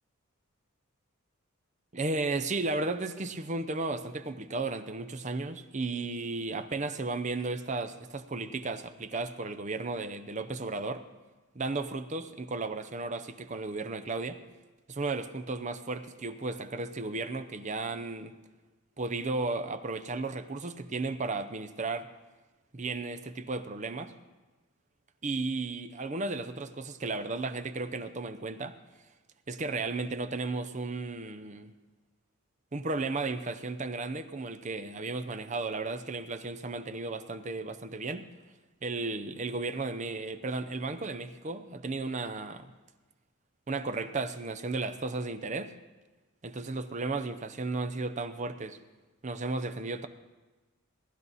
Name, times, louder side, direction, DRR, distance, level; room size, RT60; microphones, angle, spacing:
voice 1, 1.9-11.0 11.5-14.4 14.9-18.4 19.0-22.1 22.7-24.1 25.2-28.8 29.5-31.7 32.7-38.3 38.8-42.7 43.7-45.7 46.4-48.8 49.2-50.1, right 3 dB, 35° right, 9 dB, 0.7 m, -34 dB
18.0 x 12.0 x 4.1 m, 1.2 s
head